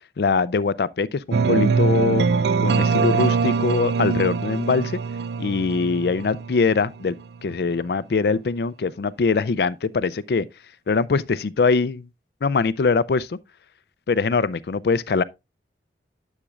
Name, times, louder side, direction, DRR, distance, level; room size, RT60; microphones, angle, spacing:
voice 1, 0.2-2.3 2.6-5.0 5.4-7.2 7.4-10.5 10.9-12.1 12.4-13.4 14.1-15.2, left 4 dB, 65° left, 0.4 m, -22 dB
sound 1, 1.3-7.2, right 5 dB, 75° right, 0.4 m, -23 dB
9.9 x 7.3 x 2.4 m
head